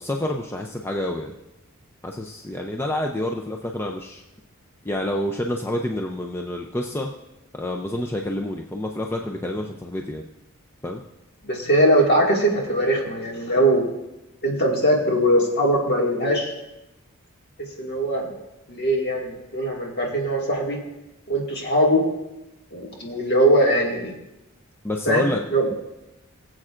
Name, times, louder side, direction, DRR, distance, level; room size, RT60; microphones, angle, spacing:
voice 1, 0.0-1.4 2.0-4.2 4.8-7.1 7.5-10.2 10.8-11.0 24.8-25.4 25.7-25.8, left 1 dB, 10° left, 1 dB, 0.4 m, -28 dB
voice 2, 11.4-13.9 14.4-16.5 17.8-18.3 18.7-20.8 21.3-22.0 22.7-24.2 25.1-25.7, right 1 dB, 50° left, -1 dB, 2.0 m, -21 dB
20.5 x 7.7 x 2.5 m, 0.93 s
head